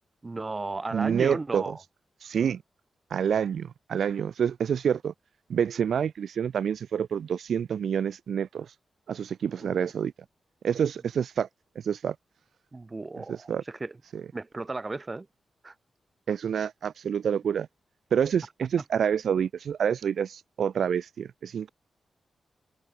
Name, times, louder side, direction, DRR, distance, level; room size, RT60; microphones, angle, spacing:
voice 1, 0.2-1.8 9.6-9.9 12.7-14.0 14.3-15.3 15.6-15.7, right 3 dB, 35° right, 5.6 m, -34 dB
voice 2, 0.9-1.8 2.2-2.6 3.1-5.1 5.5-8.7 9.1-10.1 10.6-11.5 11.8-12.2 13.3-13.6 14.1-14.2 16.3-17.7 18.1-21.7, right 8 dB, 80° right, 0.6 m, -27 dB
cardioid pair, 60°, 0 cm